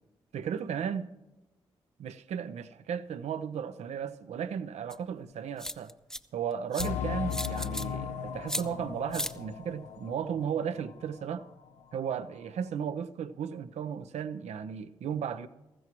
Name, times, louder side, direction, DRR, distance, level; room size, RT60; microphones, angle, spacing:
voice 1, 0.3-1.1 2.0-5.9 6.3-11.5 11.9-15.5, right 8 dB, 70° right, 0.6 m, -35 dB
sound 1, 4.9-5.0 5.6-6.2 6.7-6.9 7.3-7.9 8.5-8.6 9.1-9.3, left 1 dB, 5° left, 0.7 m, -34 dB
sound 2, 6.8-11.1 11.4-11.5 12.1-12.2, left 8 dB, 75° left, 0.7 m, -37 dB
19.0 x 15.0 x 3.0 m
hypercardioid pair, 40°, 12 cm